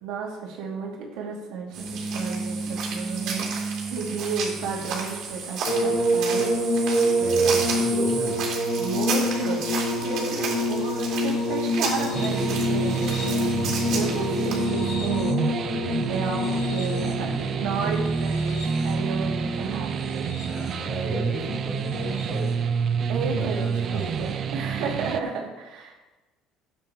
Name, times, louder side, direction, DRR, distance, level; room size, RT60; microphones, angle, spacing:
voice 1, 0.0-6.6 8.8-13.3 13.9-15.5 16.1-20.3 23.1-26.0, right 5 dB, 75° right, -2 dB, 2.8 m, -33 dB
sound 1, 1.7-14.6, right 4 dB, 55° right, 3.6 m, -32 dB
sound 2, 5.6-20.9 21.8-22.5 23.9-24.0, equal, 60° left, 2.7 m, -27 dB
voice 2, 7.2-8.4 20.5-22.6 23.0-24.1, equal, 15° left, -3 dB, 2.4 m, -34 dB
sound 3, 12.1-25.2, right 6 dB, 35° right, 0.6 m, -28 dB
13.0 x 9.1 x 3.5 m, 1.1 s
cardioid pair, 160°, 0 cm